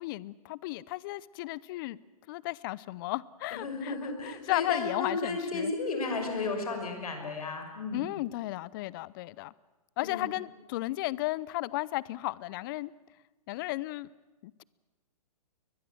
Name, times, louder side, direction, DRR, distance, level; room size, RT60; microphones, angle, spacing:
voice 1, 0.0-2.0 2.3-4.0 4.2-5.7 7.9-9.5 10.0-12.9 13.5-14.1 14.4-14.6, left 18 dB, 35° left, 0.6 m, -34 dB
voice 2, 3.5-8.1 10.0-10.3, left 3 dB, 75° left, 5.9 m, -34 dB
23.0 x 20.5 x 7.8 m
hypercardioid pair, 135°, 19 cm